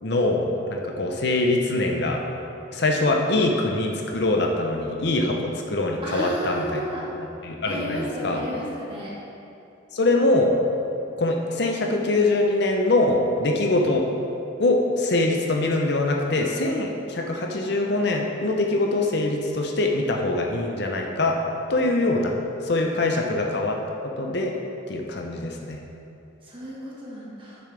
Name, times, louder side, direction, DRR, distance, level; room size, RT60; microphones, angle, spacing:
voice 1, 0.0-2.2 2.7-6.8 7.1-8.4 9.9-10.5 11.2-14.1 14.6-21.4 21.7-23.8 24.2-24.5 24.9-25.8, left 2 dB, 55° left, 1 dB, 0.7 m, -23 dB
voice 2, 6.0-7.1 7.7-9.1 23.2-23.3 26.4-27.6, equal, 25° right, -6 dB, 1.6 m, -33 dB
9.7 x 6.8 x 3.4 m, 2.8 s
head